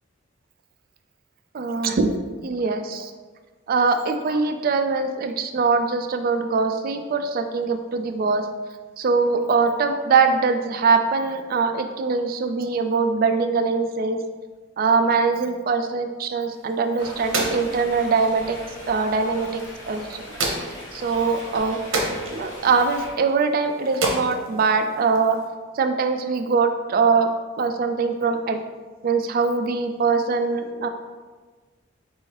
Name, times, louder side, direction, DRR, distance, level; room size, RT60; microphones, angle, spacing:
voice 1, 1.5-2.1 2.4-3.1 3.7-8.5 9.0-14.2 14.8-18.6 18.9-20.2 20.9-21.8 22.3-25.4 25.7-27.3 27.6-28.6 29.0-30.9, right 4 dB, 45° right, 6 dB, 0.3 m, -22 dB
sound 1, 16.5-25.5, right 2 dB, 80° right, 0.8 m, -32 dB
sound 2, 17.0-23.1, left 1 dB, 70° left, 0.9 m, -39 dB
3.4 x 3.1 x 4.6 m, 1.4 s
head